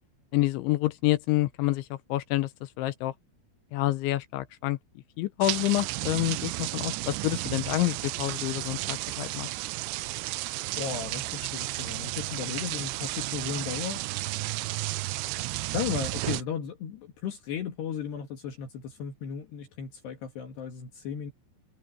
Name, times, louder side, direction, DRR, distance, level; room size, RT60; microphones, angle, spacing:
voice 1, 0.3-2.5 2.8-3.1 3.7-4.8 5.2-9.5, left 17 dB, 80° left, 3.1 m, -28 dB
sound 1, 5.4-16.4, right 20 dB, 85° right, 2.5 m, -33 dB
voice 2, 10.8-14.0 15.7-21.3, left 7 dB, 65° left, 3.8 m, -35 dB
omnidirectional pair, 5.6 m